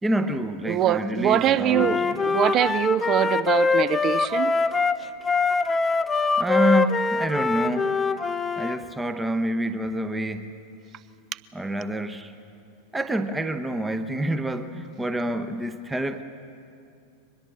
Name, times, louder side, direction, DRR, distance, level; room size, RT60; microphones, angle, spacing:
voice 1, 0.0-2.0 6.4-7.9 8.6-10.4 11.5-12.3 12.9-16.2, right 1 dB, 10° right, 0.9 m, -27 dB
voice 2, 0.7-4.5, right 11 dB, 30° right, 0.7 m, -23 dB
Wind instrument woodwind instrument, 1.7-8.8, left 4 dB, 15° left, 0.7 m, -23 dB
24.0 x 20.5 x 7.4 m
figure-of-eight pair, 90°, 0 cm